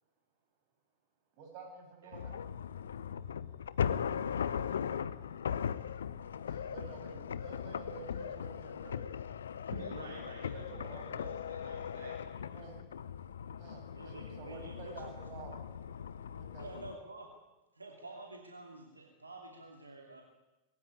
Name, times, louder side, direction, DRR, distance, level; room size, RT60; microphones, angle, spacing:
voice 1, 1.4-2.4 6.5-9.1 10.5-11.4 12.5-12.8 13.6-15.6 16.4-17.1, right 5 dB, 45° right, 3 dB, 7.5 m, -50 dB
sound 1, 2.1-16.9, left 8 dB, 65° left, 0.9 m, -39 dB
voice 2, 9.7-12.8, right 4 dB, 65° right, 1 dB, 3.3 m, -50 dB
voice 3, 13.9-15.2 16.6-17.3 17.7-20.2, right 2 dB, 80° right, 2 dB, 2.7 m, -49 dB
21.5 x 17.5 x 9.8 m, 1.1 s
figure-of-eight pair, 90°, 0 cm